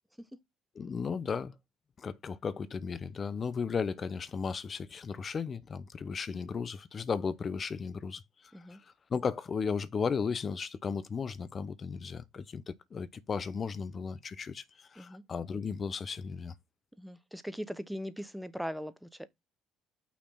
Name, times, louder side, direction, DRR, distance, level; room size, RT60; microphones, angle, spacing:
voice 1, 0.8-1.5 2.0-8.2 9.1-16.5, left 5 dB, 40° left, 0.8 m, -35 dB
voice 2, 17.0-19.3, equal, ahead, 0.9 m, -40 dB
6.0 x 4.2 x 5.6 m
supercardioid pair, 75°, 0 cm